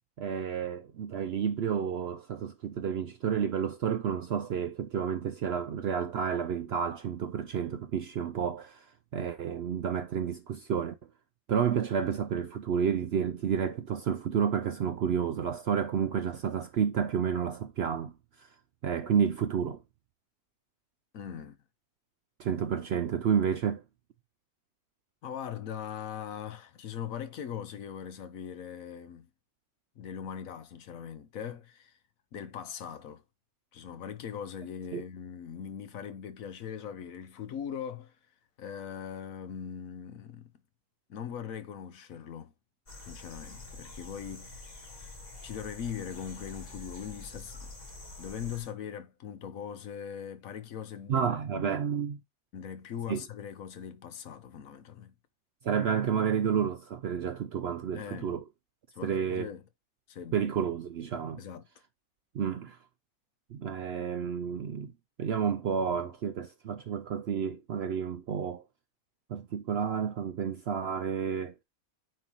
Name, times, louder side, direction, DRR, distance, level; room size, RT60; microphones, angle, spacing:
voice 1, 0.2-8.9 9.1-10.9 11.5-18.1 18.4-18.5 18.8-19.8 22.4-23.8 34.9-35.0 51.1-52.2 53.1-53.2 55.6-58.4 59.0-59.5 60.3-61.4 62.3-62.8 63.5-64.9 65.2-68.6 69.3-71.5, right 7 dB, 65° right, 0.6 m, -30 dB
voice 2, 21.1-21.6 25.2-29.3 30.0-31.9 32.3-33.2 33.7-38.1 38.6-40.5 41.1-42.5 43.0-45.2 45.4-47.7 48.2-51.3 51.5-51.7 52.5-55.1 57.9-58.3 58.9-59.6 60.1-60.5 61.4-61.6, left 8 dB, 70° left, 1.2 m, -40 dB
sound 1, 42.9-48.7, left 2 dB, 30° left, 1.5 m, -46 dB
9.0 x 3.8 x 2.9 m
omnidirectional pair, 1.5 m